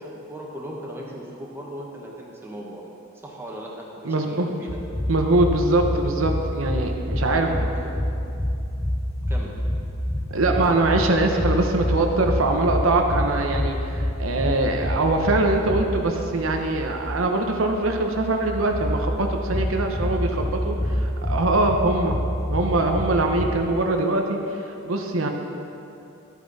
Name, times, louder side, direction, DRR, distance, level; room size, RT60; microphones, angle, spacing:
voice 1, 0.0-2.8 3.1-4.8 7.3-7.5 7.7-7.9 9.3-9.6, equal, 10° right, -3 dB, 1.3 m, -37 dB
voice 2, 4.0-4.5 5.1-7.7 10.3-22.2 22.5-24.4 24.8-25.3, right 2 dB, 90° right, 3 dB, 0.9 m, -23 dB
sound 1, 4.7-23.6, equal, 15° left, 0.7 m, -27 dB
12.0 x 8.4 x 4.1 m, 2.8 s
head